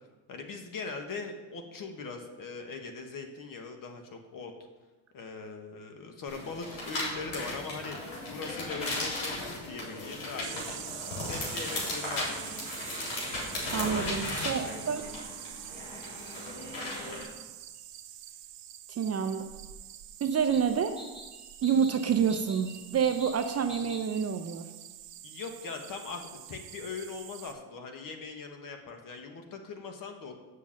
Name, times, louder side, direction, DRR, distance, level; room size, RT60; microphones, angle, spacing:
voice 1, 0.3-4.5 5.1-8.0 8.2-10.6 11.2-12.4 13.9-14.3 14.5-15.1 25.2-30.3, left 4 dB, 45° left, 4 dB, 1.4 m, -41 dB
sound 1, 6.3-17.2, left 2 dB, 70° left, 3.8 m, -36 dB
sound 2, 10.4-27.5, right 12 dB, 70° right, 0.9 m, -45 dB
voice 2, 13.7-15.0 18.9-19.4 20.2-20.9 21.6-24.7, right 7 dB, 35° right, 6 dB, 0.6 m, -28 dB
sound 3, 17.8-17.9 20.3-24.3, equal, 10° left, 3.0 m, -48 dB
7.6 x 6.4 x 7.5 m, 1.2 s
cardioid pair, 135°, 45 cm